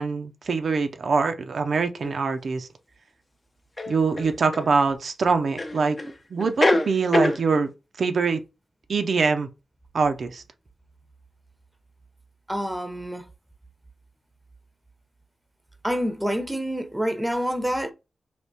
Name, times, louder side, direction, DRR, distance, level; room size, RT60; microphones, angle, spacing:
voice 1, 0.0-2.7 3.9-6.0 6.3-7.7 8.0-8.4 8.9-9.5 9.9-10.4, right 4 dB, 70° right, 0.4 m, -24 dB
sound 1, 2.0-2.1 3.8-4.7 5.6-6.1 6.4-7.4, left 1 dB, 40° left, 0.6 m, -23 dB
voice 2, 12.5-13.3 15.8-17.9, equal, 10° right, 0.6 m, -27 dB
3.4 x 2.8 x 2.7 m
cardioid pair, 50°, 0 cm